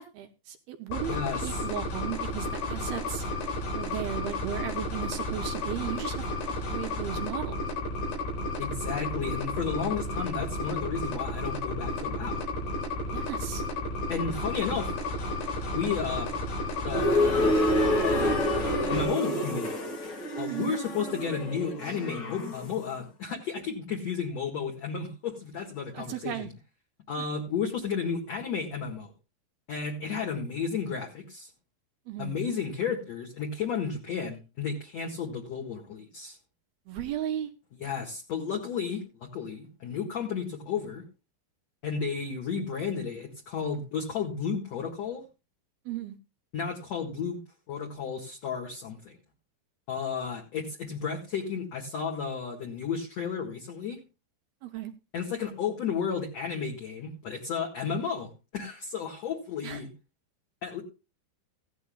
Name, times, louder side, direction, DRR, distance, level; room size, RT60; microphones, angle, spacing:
voice 1, 0.0-3.2 3.7-6.3 6.7-7.6 13.1-13.6 20.5-20.7 25.9-26.5 27.2-27.3 32.1-32.3 36.9-37.5 45.9-46.2 54.6-54.9 59.6-59.8, right 11 dB, 75° right, 6 dB, 2.3 m, -36 dB
sound 1, 0.9-19.0, left 2 dB, 90° left, 6.0 m, -32 dB
voice 2, 1.1-1.6 8.6-12.4 14.1-14.9 15.7-16.3 16.9-17.6 18.0-18.4 18.9-19.8 20.4-26.5 27.1-29.1 29.7-31.5 32.2-36.4 37.8-41.1 41.8-45.2 46.5-47.4 47.7-49.2 49.9-54.0 55.1-59.9 60.6-60.8, left 6 dB, 50° left, 0 dB, 2.3 m, -33 dB
sound 2, 16.9-22.8, left 1 dB, 70° left, 1.0 m, -28 dB
16.5 x 11.5 x 2.3 m, 0.30 s
omnidirectional pair, 5.2 m